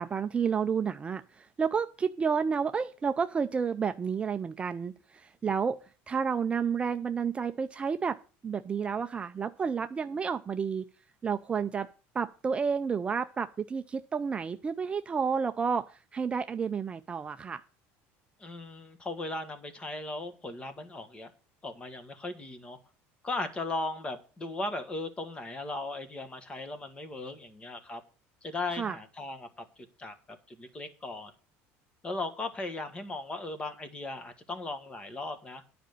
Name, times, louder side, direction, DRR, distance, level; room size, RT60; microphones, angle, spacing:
voice 1, 0.0-5.8 6.1-8.2 8.4-10.9 11.2-11.9 12.1-17.6 28.7-29.0, right 6 dB, 20° right, 9 dB, 0.4 m, -30 dB
voice 2, 18.4-21.3 21.6-22.8 23.2-28.0 28.4-29.6 30.0-30.1 30.5-31.3 32.0-35.6, left 2 dB, 20° left, 10 dB, 1.5 m, -37 dB
10.0 x 5.1 x 8.2 m, 0.36 s
cardioid pair, 140°, 6 cm